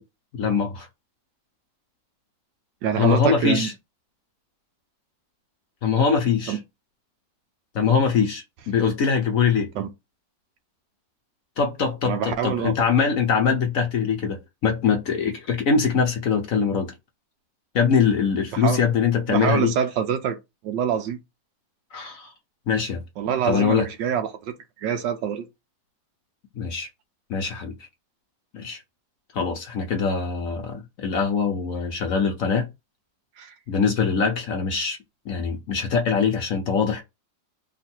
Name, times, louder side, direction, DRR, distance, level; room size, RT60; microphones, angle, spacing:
voice 1, 0.3-0.9 3.0-3.7 5.8-6.6 7.7-9.7 11.6-16.9 17.7-19.7 21.9-22.3 22.7-23.0 23.5-23.9 26.6-26.9 27.3-27.7 28.5-28.8 29.3-32.7 33.7-35.0 35.3-37.0, left 6 dB, 60° left, 1.0 m, -23 dB
voice 2, 2.8-3.7 6.5-6.6 9.8-9.9 12.0-12.7 18.5-18.8 19.3-20.4 20.6-21.2 23.2-25.4 33.4-33.5, right 8 dB, 75° right, 1.4 m, -25 dB
3.6 x 2.5 x 4.3 m
omnidirectional pair, 2.0 m